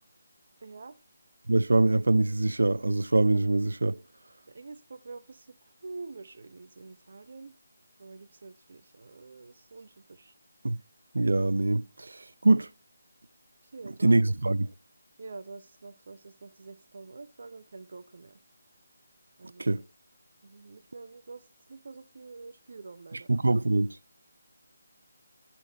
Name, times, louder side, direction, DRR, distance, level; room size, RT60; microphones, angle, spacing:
voice 1, 0.6-1.0 4.5-7.5 8.0-10.3 13.7-14.1 15.2-18.4 19.4-19.8 20.4-23.3, right 3 dB, 60° right, 0.8 m, -46 dB
voice 2, 1.5-4.0 10.6-10.8 11.1-12.7 14.0-14.7 19.6-19.8 23.3-24.0, right 2 dB, 80° right, 0.4 m, -24 dB
10.5 x 4.3 x 4.1 m
figure-of-eight pair, 160°, 0 cm